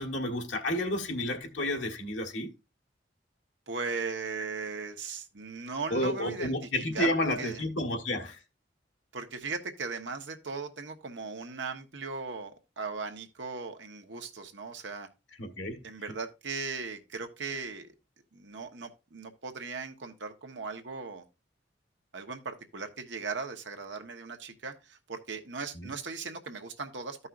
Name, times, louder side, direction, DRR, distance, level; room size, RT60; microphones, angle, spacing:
voice 1, 0.0-2.5 5.9-8.4 15.4-15.8 25.7-25.9, left 1 dB, 90° left, 1.5 m, -31 dB
voice 2, 3.7-7.1 7.4-7.6 9.1-15.1 15.8-17.9 18.3-21.2 22.1-27.2, right 4 dB, 75° right, 1.2 m, -38 dB
14.0 x 5.5 x 2.5 m
head